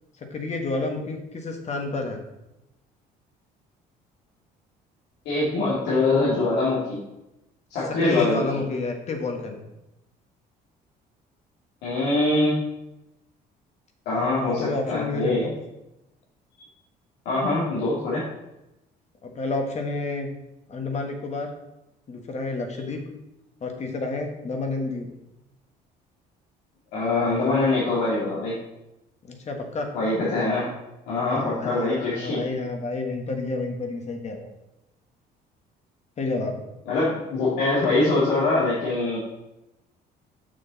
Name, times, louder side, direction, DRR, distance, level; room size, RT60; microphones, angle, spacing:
voice 1, 0.2-2.2 8.0-9.7 14.2-15.5 19.2-20.3 20.7-21.5 22.1-23.0 23.6-25.1 29.3-29.9 31.2-34.5 36.2-36.6, left 3 dB, 40° left, 4 dB, 1.3 m, -30 dB
voice 2, 5.3-7.0 7.7-8.4 11.8-12.5 14.1-15.5 17.3-18.2 26.9-28.5 29.9-30.7 31.1-32.4 36.9-39.2, left 2 dB, 90° left, -9 dB, 2.3 m, -23 dB
6.5 x 6.2 x 4.1 m, 0.91 s
cardioid pair, 110°, 17 cm